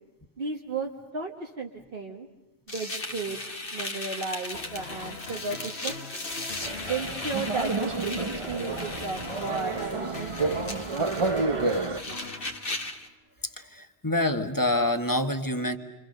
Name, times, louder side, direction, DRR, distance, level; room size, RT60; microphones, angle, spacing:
voice 1, 0.4-2.3 2.7-3.4 3.7-6.2 6.8-10.6 10.9-12.4, right 4 dB, 60° right, 0 dB, 1.7 m, -35 dB
sound 1, 2.7-13.1, left 2 dB, 60° left, 1.8 m, -37 dB
sound 2, 4.5-13.1, left 3 dB, 80° left, 1.9 m, -42 dB
sound 3, 6.6-12.0, right 3 dB, 30° right, 0.9 m, -30 dB
voice 2, 13.6-15.8, left 1 dB, 20° left, 7 dB, 1.5 m, -26 dB
29.0 x 26.0 x 6.6 m, 1.1 s
omnidirectional pair, 1.0 m